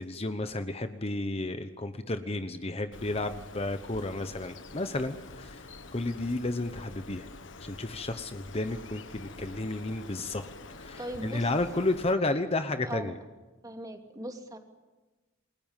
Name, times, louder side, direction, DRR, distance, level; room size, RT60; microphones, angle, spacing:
voice 1, 0.0-7.3 7.6-10.4 10.8-13.2, left 2 dB, 30° left, 9 dB, 1.0 m, -32 dB
Bird, 2.9-12.1, left 3 dB, 70° left, 1.5 m, -47 dB
voice 2, 11.0-11.5 12.8-13.2 13.6-14.6, right 1 dB, 20° right, 4 dB, 2.8 m, -39 dB
28.5 x 21.5 x 7.4 m, 1.2 s
head